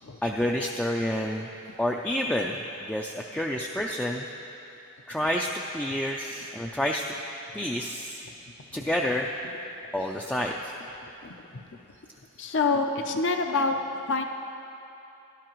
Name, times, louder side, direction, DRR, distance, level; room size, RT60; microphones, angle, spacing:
voice 1, 0.2-1.5 1.8-4.3 5.1-7.0 7.5-8.2 8.7-9.3 9.9-10.7, left 1 dB, 5° left, -1 dB, 0.4 m, -29 dB
voice 2, 11.2-11.6 12.4-13.8 14.1-14.2, left 3 dB, 60° left, 5 dB, 0.6 m, -27 dB
17.0 x 11.5 x 3.0 m, 3.0 s
head